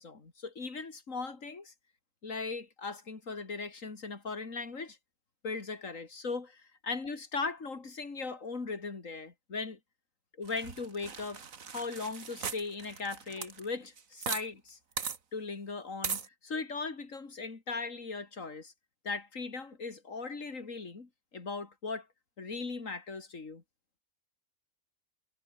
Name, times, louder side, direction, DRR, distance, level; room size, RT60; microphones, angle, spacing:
voice 1, 0.0-1.7 2.2-5.0 5.4-9.8 10.4-11.4 11.7-14.8 15.3-18.7 19.0-22.1 22.4-23.6, left 4 dB, 70° left, 3.3 m, -38 dB
sound 1, 10.5-14.4 14.7-14.8 15.0-15.2 16.0-16.3, right 6 dB, 85° right, 2.1 m, -38 dB
omnidirectional pair, 1.4 m